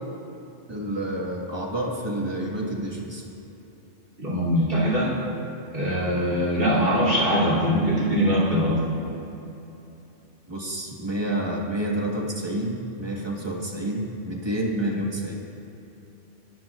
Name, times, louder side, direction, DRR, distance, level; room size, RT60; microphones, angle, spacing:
voice 1, 0.7-3.3 6.7-7.0 10.5-15.4, right 1 dB, 20° right, -2 dB, 1.8 m, -29 dB
voice 2, 4.2-5.1 5.7-9.0, equal, 45° right, -7 dB, 3.6 m, -22 dB
21.5 x 15.0 x 2.5 m, 3.0 s
omnidirectional pair, 1.3 m